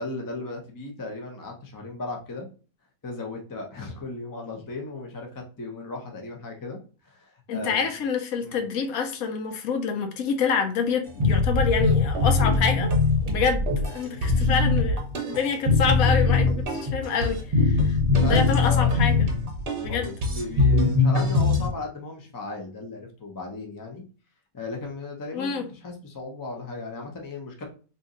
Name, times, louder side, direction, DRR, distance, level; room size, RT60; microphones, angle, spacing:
voice 1, 0.0-2.5 3.0-7.9 8.4-8.6 18.1-18.9 19.9-24.0 24.5-27.6, left 3 dB, 25° left, 2 dB, 0.4 m, -36 dB
voice 2, 7.5-12.9 13.2-18.0 18.2-19.3 19.8-20.1 25.3-25.6, left 6 dB, 85° left, 6 dB, 1.1 m, -27 dB
sound 1, 11.2-21.7, left 3 dB, 50° right, 0.9 m, -22 dB
2.8 x 2.6 x 3.7 m, 0.35 s
omnidirectional pair, 1.5 m